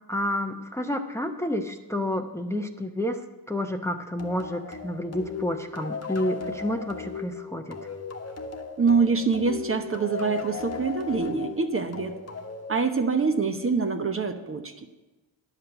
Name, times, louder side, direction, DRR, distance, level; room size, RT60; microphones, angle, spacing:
voice 1, 0.1-7.8, left 1 dB, 5° left, 4 dB, 0.8 m, -30 dB
sound 1, 4.2-13.4, left 5 dB, 30° left, 1.3 m, -37 dB
voice 2, 8.8-12.2 12.7-14.9, right 4 dB, 25° right, 6 dB, 0.9 m, -25 dB
10.0 x 5.8 x 8.0 m, 1.1 s
supercardioid pair, 60°, 49 cm